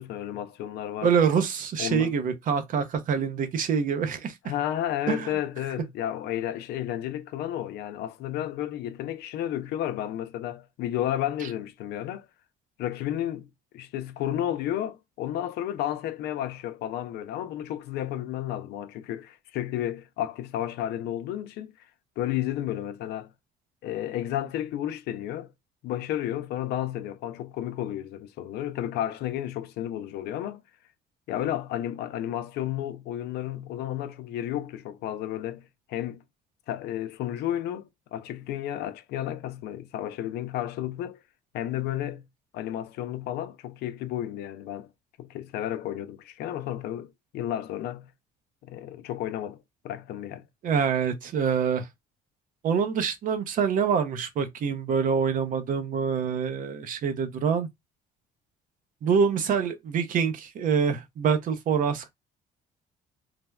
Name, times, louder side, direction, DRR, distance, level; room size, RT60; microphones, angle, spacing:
voice 1, 0.0-1.1 1.8-2.1 4.4-12.3 12.8-13.5 13.7-21.7 22.2-23.3 23.8-25.5 25.8-30.6 31.3-36.2 36.7-41.2 41.5-42.2 42.5-44.9 45.2-48.1 48.6-49.6 49.8-50.4, left 12 dB, 75° left, 0.4 m, -32 dB
voice 2, 1.0-4.4 5.1-5.4 50.6-51.9 52.6-57.7 59.0-62.1, right 6 dB, 55° right, 0.6 m, -25 dB
3.2 x 2.1 x 2.2 m
cardioid pair, 110°, 17 cm